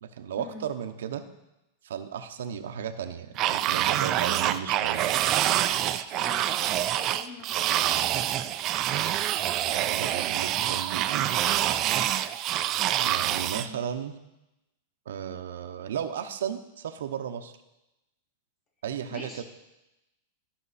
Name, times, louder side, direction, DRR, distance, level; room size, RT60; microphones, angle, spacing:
voice 1, 0.0-1.2 1.8-5.2 9.2-11.3 13.0-14.1 15.1-17.5 18.8-19.4, right 8 dB, 85° right, 8 dB, 0.8 m, -35 dB
sound 1, 3.4-13.7, right 12 dB, 35° right, 0.4 m, -26 dB
voice 2, 6.1-6.4 6.8-7.7 13.5-13.8 19.1-19.4, left 3 dB, 35° left, 0 dB, 2.5 m, -44 dB
13.5 x 5.9 x 4.2 m, 0.94 s
supercardioid pair, 140°, 0 cm